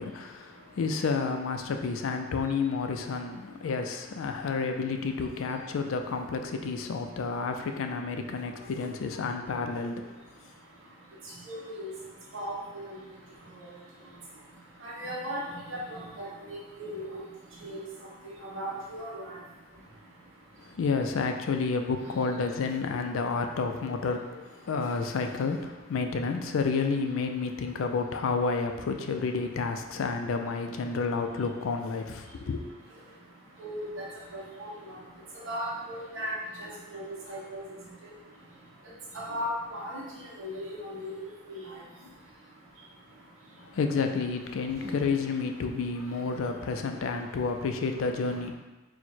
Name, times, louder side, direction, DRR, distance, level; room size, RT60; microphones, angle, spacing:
voice 1, 0.0-10.2 20.7-32.7 43.6-48.5, left 4 dB, 70° left, 5 dB, 0.4 m, -30 dB
voice 2, 11.5-11.9 12.3-12.9 14.8-15.4 15.7-16.3 16.8-17.2 17.6-17.8 18.4-19.3 33.6-34.1 34.3-34.7 35.5-36.3 36.6-37.6 39.1-40.0 40.4-41.1 41.5-41.6, equal, 70° right, -5 dB, 1.1 m, -36 dB
4.5 x 2.1 x 4.2 m, 1.1 s
head